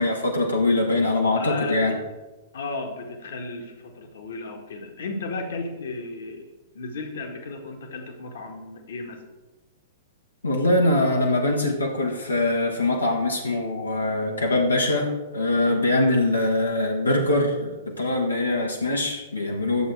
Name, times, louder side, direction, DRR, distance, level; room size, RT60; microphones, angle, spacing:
voice 1, 0.0-2.0 10.4-19.9, left 2 dB, 85° left, -1 dB, 1.5 m, -23 dB
voice 2, 1.3-1.8 2.5-6.5 6.7-9.2, left 3 dB, 60° left, 3 dB, 1.7 m, -34 dB
11.0 x 7.4 x 4.7 m, 1.1 s
figure-of-eight pair, 110°, 0 cm